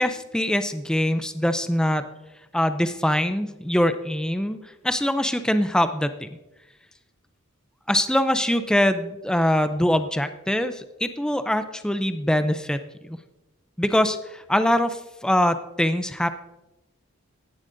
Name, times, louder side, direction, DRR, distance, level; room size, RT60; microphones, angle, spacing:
voice 1, 0.0-2.1 2.5-6.4 7.9-12.8 13.0-13.2 13.8-16.3, left 1 dB, 5° left, 9 dB, 0.4 m, -23 dB
16.5 x 11.0 x 2.6 m, 1.0 s
head